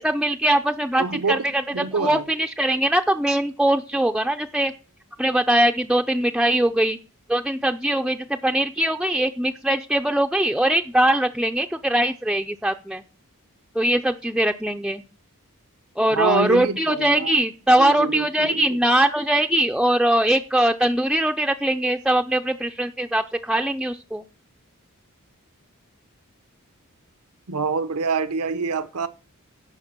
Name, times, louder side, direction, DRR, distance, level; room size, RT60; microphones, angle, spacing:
voice 1, 0.0-4.7 5.2-7.0 7.3-13.0 13.8-15.0 16.0-24.2, right 1 dB, 5° right, 0.5 m, -21 dB
voice 2, 1.0-1.4 1.7-2.2 16.1-17.4 17.8-18.6 27.5-29.1, right 4 dB, 80° right, 0.8 m, -25 dB
16.5 x 6.0 x 6.0 m
head